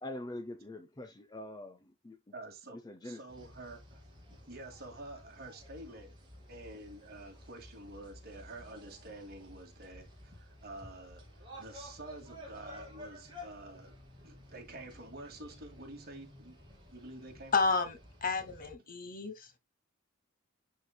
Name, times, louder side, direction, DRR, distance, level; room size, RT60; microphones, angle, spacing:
voice 1, 0.0-2.2 2.8-3.2, left 1 dB, 20° left, 0.5 m, -44 dB
voice 2, 2.3-4.0 4.5-6.1 6.5-14.0 14.2-16.6 16.9-17.5, right 2 dB, 50° right, 2.0 m, -48 dB
sound 1, 3.3-18.7, left 1 dB, 20° right, 2.5 m, -53 dB
voice 3, 17.5-19.5, left 4 dB, 40° left, 1.0 m, -31 dB
11.5 x 3.9 x 2.2 m
head